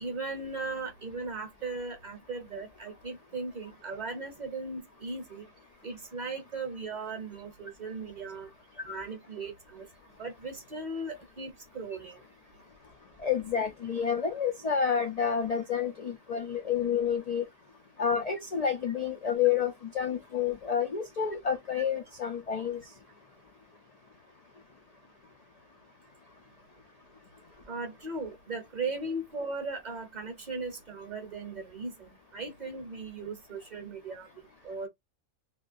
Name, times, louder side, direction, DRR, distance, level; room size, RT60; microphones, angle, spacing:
voice 1, 0.0-5.5 5.8-8.5 8.8-9.9 10.2-12.2 27.7-34.3 34.6-34.9, right 3 dB, 40° right, 0.8 m, -38 dB
voice 2, 13.2-17.4 18.0-22.8, left 7 dB, 60° left, 0.4 m, -29 dB
3.5 x 2.3 x 2.5 m
omnidirectional pair, 1.4 m